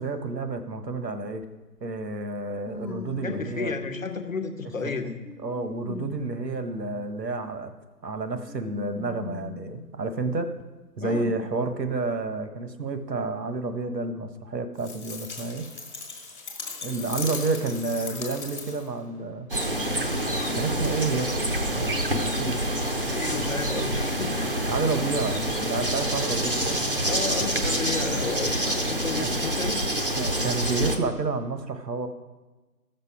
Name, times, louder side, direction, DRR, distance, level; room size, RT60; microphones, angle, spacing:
voice 1, 0.0-1.4 1.8-3.7 4.8-4.9 5.4-7.7 8.0-10.5 11.0-15.7 16.8-19.5 20.5-21.3 21.8-22.5 24.7-26.8 29.2-29.3 30.2-32.1, right 3 dB, 80° right, 8 dB, 1.3 m, -30 dB
sound 1, 1.4-1.5 2.6-4.7 5.2-7.3 8.5-9.9 10.6-10.7 11.8-11.9, left 3 dB, 85° left, 1.2 m, -40 dB
voice 2, 3.2-5.2 11.0-11.4 23.1-24.5 27.1-29.8, left 4 dB, 55° left, 6 dB, 1.1 m, -32 dB
sound 2, 14.8-19.0, left 4 dB, 30° left, 1.4 m, -37 dB
sound 3, 19.5-31.0, right 1 dB, 35° right, 0.7 m, -27 dB
15.0 x 6.8 x 4.8 m, 1.2 s
figure-of-eight pair, 160°, 49 cm